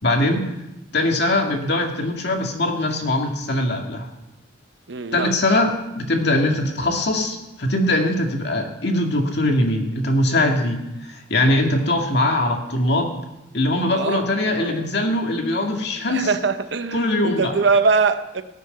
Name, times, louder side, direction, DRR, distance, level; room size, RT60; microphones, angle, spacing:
voice 1, 0.0-0.4 0.9-4.1 5.1-13.2 13.5-16.3 16.9-17.5, left 1 dB, 55° left, 2 dB, 2.2 m, -21 dB
voice 2, 4.9-5.4 13.9-14.9 16.1-18.4, right 4 dB, 60° right, 10 dB, 0.8 m, -22 dB
18.0 x 6.7 x 7.9 m, 0.94 s
head